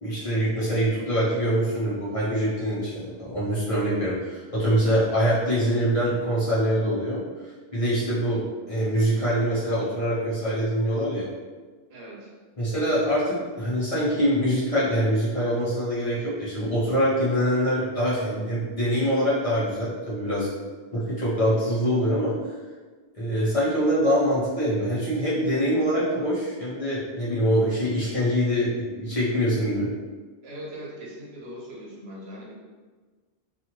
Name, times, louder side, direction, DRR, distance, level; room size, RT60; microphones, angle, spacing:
voice 1, 0.0-7.2 7.7-11.3 12.6-20.5 20.9-22.4 23.1-29.9, equal, 35° left, -10 dB, 0.9 m, -24 dB
voice 2, 11.9-12.3 30.4-32.5, equal, 80° right, -3 dB, 1.0 m, -40 dB
2.7 x 2.5 x 2.9 m, 1.4 s
omnidirectional pair, 1.1 m